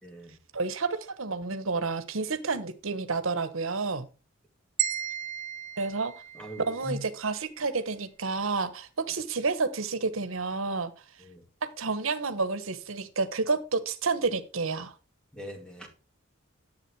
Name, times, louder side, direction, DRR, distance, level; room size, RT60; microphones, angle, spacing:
voice 1, 0.0-0.4 6.3-7.0 11.2-11.4 15.3-15.9, equal, 5° left, 3 dB, 2.2 m, -40 dB
voice 2, 0.5-4.1 5.8-6.1 6.6-10.9 11.8-14.9, right 4 dB, 85° right, 11 dB, 1.1 m, -30 dB
sound 1, 4.8-7.0, right 11 dB, 40° right, 1.7 m, -34 dB
11.0 x 7.6 x 4.7 m, 0.34 s
head